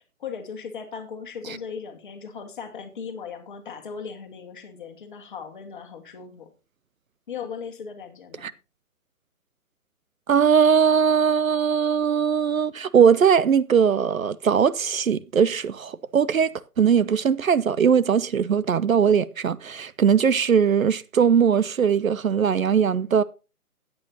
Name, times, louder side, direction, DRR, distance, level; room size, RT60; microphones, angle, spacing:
voice 1, 0.2-6.5 7.3-8.5, left 6 dB, 35° left, 1.6 m, -37 dB
voice 2, 10.3-16.5 16.8-23.2, right 7 dB, 65° right, 0.6 m, -20 dB
13.5 x 8.7 x 2.7 m
figure-of-eight pair, 145°, 45 cm